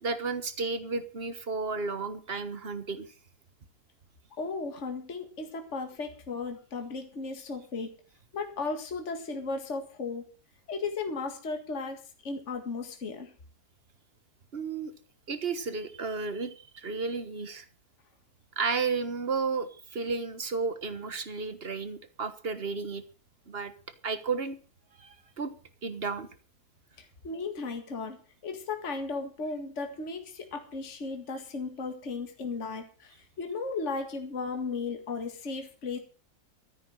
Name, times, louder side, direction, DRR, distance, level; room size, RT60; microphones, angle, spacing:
voice 1, 0.0-3.1 14.5-14.9 15.3-17.6 18.6-23.0 23.5-23.7 24.0-24.6 25.0-25.5 25.8-26.3, right 4 dB, 40° right, 12 dB, 1.5 m, -33 dB
voice 2, 4.4-7.9 8.3-10.3 10.7-13.3 27.0-28.2 28.4-36.0, left 4 dB, 45° left, 5 dB, 2.2 m, -35 dB
14.0 x 9.6 x 6.4 m, 0.38 s
omnidirectional pair, 1.8 m